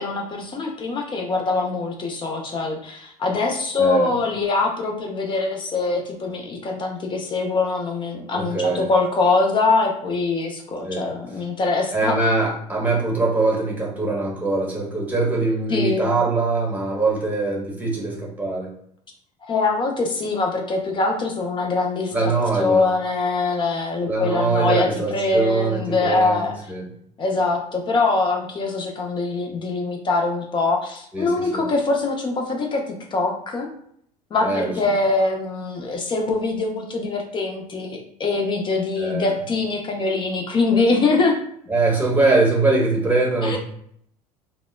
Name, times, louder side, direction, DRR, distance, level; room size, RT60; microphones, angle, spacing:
voice 1, 0.0-12.2 15.7-16.1 19.5-26.5 27.2-33.7 34.3-41.4 43.4-43.6, left 3 dB, 25° left, 2 dB, 0.5 m, -23 dB
voice 2, 8.3-8.9 10.8-11.1 11.9-18.7 22.1-22.8 24.1-26.8 31.1-31.6 34.4-34.7 39.0-39.3 41.7-43.6, right 3 dB, 10° right, -3 dB, 1.0 m, -22 dB
2.9 x 2.0 x 2.2 m, 0.67 s
figure-of-eight pair, 70°, 20 cm